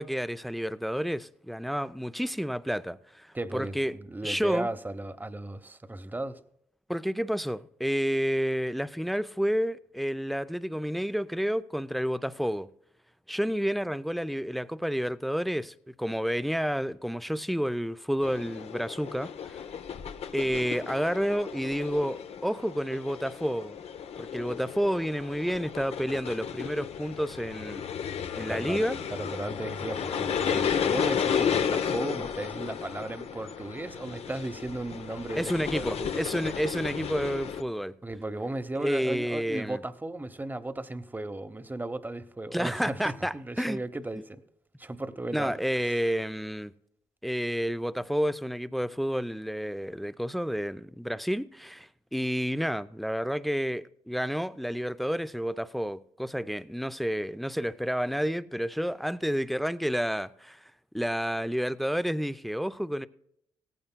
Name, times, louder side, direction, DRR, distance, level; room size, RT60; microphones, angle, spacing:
voice 1, 0.0-3.9 4.2-4.7 6.9-12.7 13.3-19.6 20.3-23.8 24.2-27.8 28.3-29.0 35.4-37.9 38.8-39.8 42.5-43.8 45.3-46.7 47.2-60.6 60.9-63.1, equal, ahead, 0.5 m, -30 dB
voice 2, 3.3-6.4 28.5-36.3 38.0-44.4 44.8-45.6 45.9-46.0, right 2 dB, 15° right, 0.9 m, -36 dB
sound 1, 18.2-37.6, left 7 dB, 60° left, 0.8 m, -33 dB
18.0 x 14.5 x 2.2 m
supercardioid pair, 50°, 12 cm